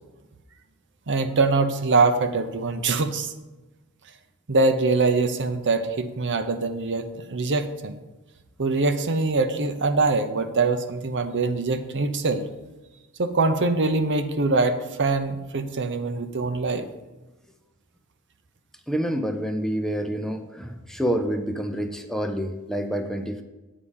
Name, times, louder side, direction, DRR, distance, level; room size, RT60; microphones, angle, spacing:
voice 1, 1.1-3.3 4.5-8.0 8.6-12.5 13.2-16.9, right 3 dB, 55° right, 8 dB, 0.7 m, -23 dB
voice 2, 18.9-23.4, equal, ahead, 5 dB, 0.6 m, -28 dB
8.5 x 5.0 x 7.3 m, 1.1 s
head